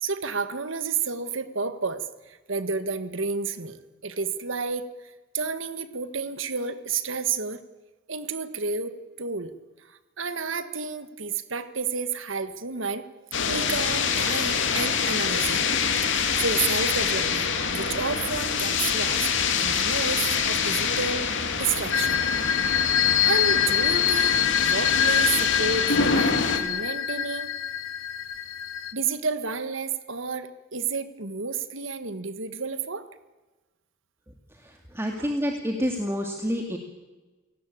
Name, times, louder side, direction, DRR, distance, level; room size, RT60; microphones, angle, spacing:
voice 1, 0.0-7.6 8.1-9.5 9.8-13.1 13.5-15.6 16.0-16.1 16.4-19.3 19.6-22.7 23.2-27.6 28.9-33.1 35.2-35.3, right 5 dB, 70° right, 11 dB, 1.6 m, -31 dB
sound 1, 13.3-26.6, left 5 dB, 65° left, 3.0 m, -26 dB
sound 2, 21.9-28.9, left 9 dB, 85° left, 2.0 m, -25 dB
voice 2, 34.6-36.8, equal, 15° right, 3 dB, 2.3 m, -28 dB
29.5 x 18.0 x 8.7 m, 1.2 s
head